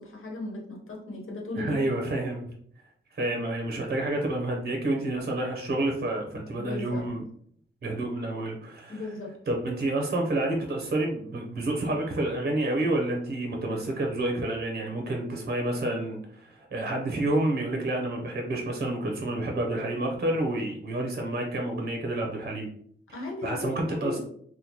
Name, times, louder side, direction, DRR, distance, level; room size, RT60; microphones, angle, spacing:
voice 1, 0.0-1.8 6.6-7.0 8.9-9.3 23.1-24.2, left 2 dB, 80° left, -1 dB, 1.0 m, -36 dB
voice 2, 1.6-2.5 3.1-7.2 7.8-9.1 9.5-22.7 23.1-24.2, right 1 dB, 50° right, 1 dB, 0.7 m, -29 dB
3.6 x 2.2 x 2.9 m, 0.64 s
wide cardioid pair, 85°, 21 cm